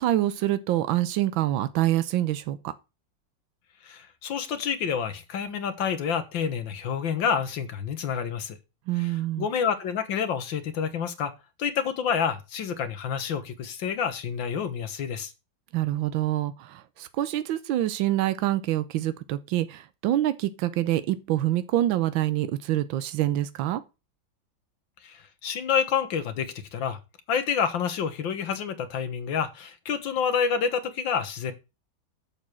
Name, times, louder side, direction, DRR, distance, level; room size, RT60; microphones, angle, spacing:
voice 1, 0.0-2.7 8.9-9.5 15.7-23.8, right 14 dB, 85° right, 1.5 m, -26 dB
voice 2, 3.8-8.6 9.0-11.3 11.6-15.3 25.0-27.0 27.3-31.5, left 7 dB, 80° left, 2.0 m, -28 dB
7.3 x 6.9 x 6.2 m
omnidirectional pair, 2.1 m